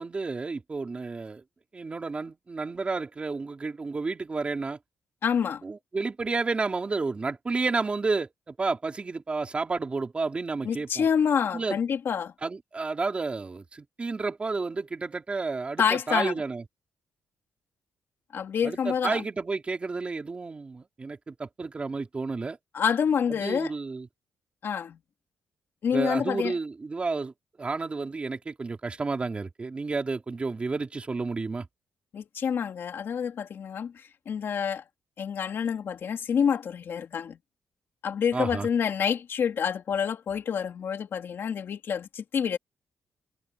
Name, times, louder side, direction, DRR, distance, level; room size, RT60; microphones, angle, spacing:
voice 1, 0.0-1.4 1.7-4.8 5.6-11.1 11.5-11.8 12.4-16.6 18.6-22.6 23.3-24.1 25.9-27.3 27.6-31.7 38.3-38.7, right 3 dB, 25° right, 3.2 m, -31 dB
voice 2, 5.2-5.6 10.6-12.3 15.8-16.3 18.3-19.2 22.7-23.7 24.6-25.0 25.8-26.6 32.1-34.8 35.2-37.4 38.0-42.6, left 7 dB, 50° left, 2.4 m, -27 dB
cardioid pair, 150°, 5 cm